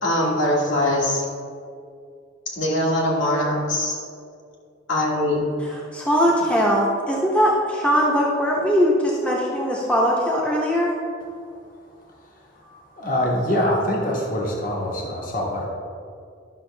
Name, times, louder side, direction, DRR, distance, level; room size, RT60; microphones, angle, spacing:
voice 1, 0.0-1.2 2.5-4.0 4.9-5.4, left 1 dB, 75° left, -4 dB, 2.0 m, -22 dB
voice 2, 5.9-10.9, equal, 5° left, -4 dB, 0.8 m, -20 dB
voice 3, 13.0-15.7, left 1 dB, 45° left, -2 dB, 1.3 m, -24 dB
11.5 x 6.1 x 3.3 m, 2.3 s
head